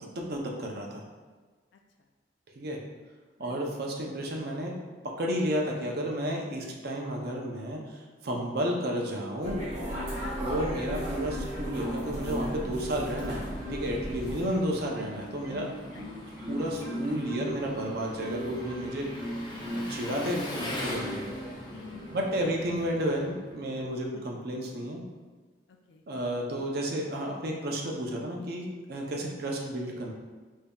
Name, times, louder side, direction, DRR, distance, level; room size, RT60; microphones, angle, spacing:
voice 1, 0.1-1.0 2.6-2.8 3.4-4.8 5.2-9.6 10.4-16.0 16.5-19.4 19.7-21.2 22.1-25.0 26.1-30.1, equal, 60° right, -1 dB, 0.6 m, -32 dB
voice 2, 3.4-3.8 10.1-10.5 14.2-14.6 15.9-16.1 21.7-22.3 24.1-24.3 25.7-26.0, left 4 dB, 80° left, 3 dB, 0.4 m, -49 dB
Marimba xylophone, 9.4-10.4 10.8-12.7 13.1-14.0 14.6-20.0 20.5-21.4 21.9-22.2, right 1 dB, 15° right, 1.2 m, -39 dB
sound 1, 9.4-14.4, equal, 40° right, 1.3 m, -36 dB
Engine, 10.4-23.9, left 1 dB, 25° left, 0.5 m, -42 dB
5.2 x 2.7 x 2.3 m, 1.3 s
head